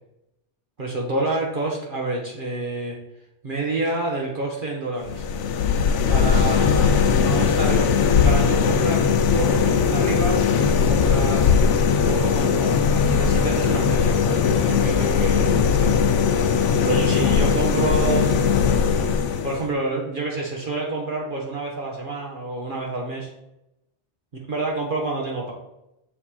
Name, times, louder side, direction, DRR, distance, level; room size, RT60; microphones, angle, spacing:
voice 1, 0.8-3.0 3.4-5.2 6.1-7.9 8.2-11.5 12.0-16.0 16.8-18.3 19.4-23.3 24.5-25.5, right 2 dB, 50° right, -2 dB, 1.2 m, -28 dB
sound 1, 5.0-19.7, left 6 dB, 90° left, 0.9 m, -19 dB
6.8 x 4.4 x 4.3 m, 0.88 s
omnidirectional pair, 1.2 m